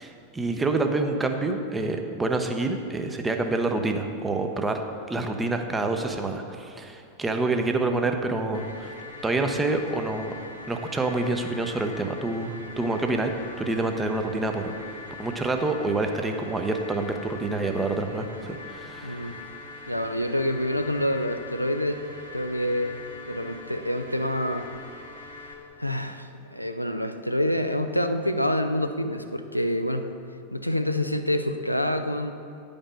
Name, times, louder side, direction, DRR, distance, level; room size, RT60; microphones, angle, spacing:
voice 1, 0.0-4.8 5.1-8.9 9.2-13.3 13.6-14.7 15.2-19.5, right 2 dB, 10° right, 5 dB, 0.7 m, -27 dB
sound 1, 8.5-25.5, left 3 dB, 70° left, 1.2 m, -42 dB
voice 2, 19.0-19.4 19.9-22.0 22.3-23.0 23.2-24.7 25.8-30.1 30.5-32.3, left 1 dB, 90° left, 7 dB, 0.4 m, -27 dB
9.7 x 5.3 x 5.2 m, 2.5 s
figure-of-eight pair, 90°, 0 cm